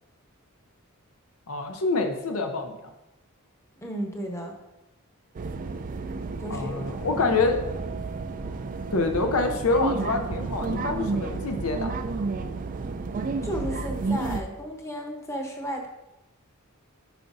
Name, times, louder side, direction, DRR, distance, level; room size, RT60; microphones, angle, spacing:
voice 1, 1.5-2.7 6.5-7.6 8.9-11.9, left 3 dB, 70° left, 5 dB, 0.7 m, -26 dB
voice 2, 3.8-4.6 6.4-6.8 7.1-7.2 13.4-15.9, equal, 15° left, 1 dB, 0.9 m, -33 dB
sound 1, 5.3-14.4, right 3 dB, 40° right, 0.3 m, -31 dB
9.1 x 5.7 x 2.6 m, 0.96 s
head